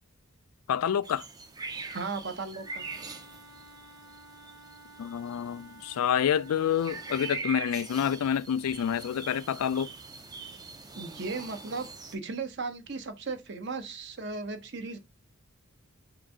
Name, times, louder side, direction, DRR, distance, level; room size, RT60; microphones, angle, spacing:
voice 1, 0.7-1.2 5.0-9.9, left 8 dB, 85° left, 0.3 m, -28 dB
sound 1, 1.0-12.2, right 4 dB, 20° right, 0.4 m, -43 dB
voice 2, 1.9-2.8 11.0-15.0, right 4 dB, 55° right, 0.8 m, -36 dB
Wind instrument woodwind instrument, 2.6-7.5, right 2 dB, 80° right, 1.1 m, -52 dB
3.8 x 2.6 x 4.7 m
head